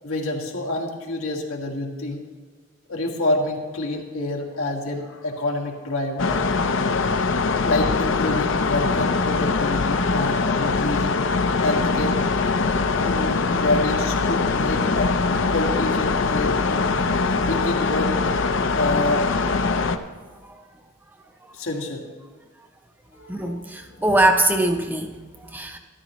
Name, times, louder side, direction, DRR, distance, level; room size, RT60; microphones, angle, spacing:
voice 1, 0.0-2.2 2.9-6.4 7.6-11.2 11.6-12.2 13.0-15.1 15.5-16.9 17.4-18.1 18.7-19.6 21.5-22.0 23.1-23.9, left 2 dB, 90° left, 0 dB, 1.9 m, -27 dB
sound 1, 6.2-20.0, left 4 dB, 65° left, 0.6 m, -22 dB
voice 2, 23.3-25.8, right 1 dB, 10° right, 4 dB, 0.6 m, -22 dB
14.0 x 13.5 x 3.0 m, 1.4 s
head